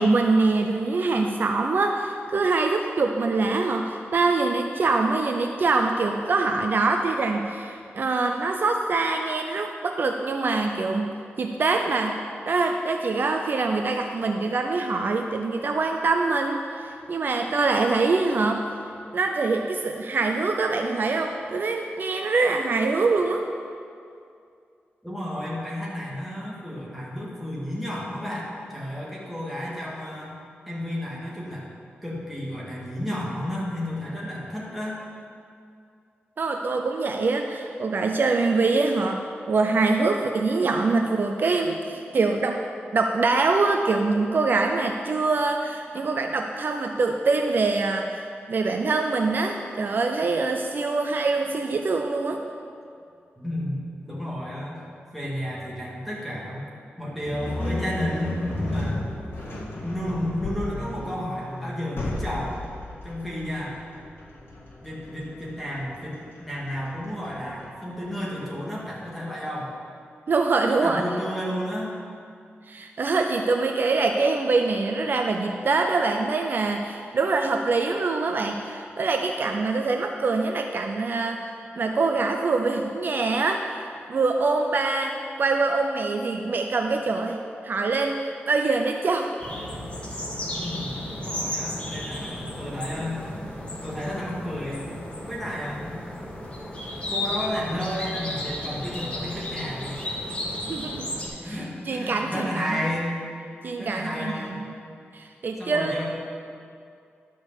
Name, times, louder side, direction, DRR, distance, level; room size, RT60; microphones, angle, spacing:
voice 1, 0.0-18.6 19.1-23.4 36.4-42.6 42.9-52.4 70.3-71.0 72.7-81.4 81.8-89.3 100.7-101.1 101.4-101.6 101.9-102.8 103.6-104.7 105.1-105.9, right 3 dB, 50° right, 4 dB, 0.5 m, -24 dB
voice 2, 25.0-30.4 30.7-31.6 32.0-35.0 53.4-54.8 55.1-56.6 57.0-59.1 59.8-62.6 63.0-63.8 64.8-69.7 70.7-71.9 90.5-93.2 93.8-94.8 95.3-96.0 97.1-100.0 101.4-103.2 103.8-104.6 105.6-106.1, equal, ahead, -6 dB, 2.3 m, -32 dB
sound 1, 57.2-68.4, left 1 dB, 60° left, 1.9 m, -34 dB
sound 2, 89.4-101.3, left 1 dB, 30° left, 1.7 m, -34 dB
11.5 x 5.1 x 7.0 m, 2.4 s
wide cardioid pair, 140°, 4 cm